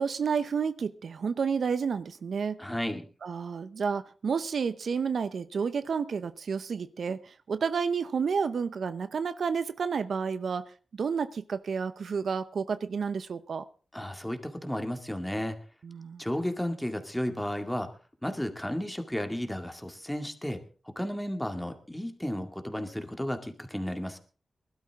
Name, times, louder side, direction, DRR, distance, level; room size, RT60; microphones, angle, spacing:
voice 1, 0.0-2.6 3.2-10.7 11.0-13.6 15.8-16.2, right 6 dB, 75° right, 0.7 m, -30 dB
voice 2, 2.6-3.1 13.9-15.6 16.2-17.9 18.2-24.2, equal, 10° left, 2.2 m, -33 dB
20.0 x 12.5 x 3.6 m
cardioid pair, 60°, 0 cm